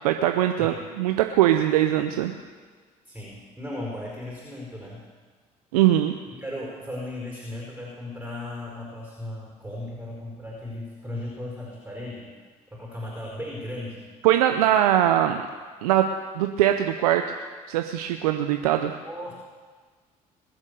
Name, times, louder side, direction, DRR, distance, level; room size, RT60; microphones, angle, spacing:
voice 1, 0.0-2.3 5.7-6.1 14.2-15.4 15.8-17.2 17.7-18.9, right 12 dB, 85° right, 6 dB, 0.6 m, -21 dB
voice 2, 3.0-5.0 6.4-12.3 12.7-14.1 19.0-19.3, left 1 dB, 10° right, -4 dB, 4.7 m, -36 dB
21.0 x 7.3 x 6.8 m, 1.5 s
hypercardioid pair, 60°, 19 cm